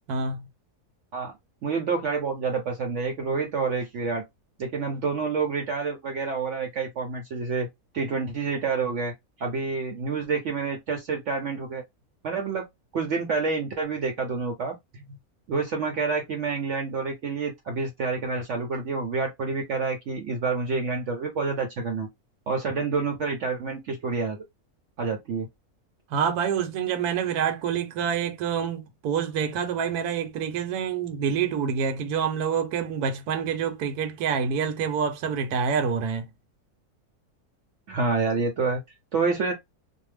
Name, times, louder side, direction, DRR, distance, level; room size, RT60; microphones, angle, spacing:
voice 1, 0.1-0.4 26.1-36.3, right 7 dB, 80° right, 1.1 m, -27 dB
voice 2, 1.6-4.2 4.6-7.7 7.9-9.1 9.4-11.8 12.2-12.6 12.9-14.7 15.5-22.1 22.5-24.4 25.0-25.5 37.9-38.8 39.1-39.5, right 4 dB, 65° right, 0.8 m, -28 dB
2.6 x 2.0 x 3.2 m
omnidirectional pair, 1.6 m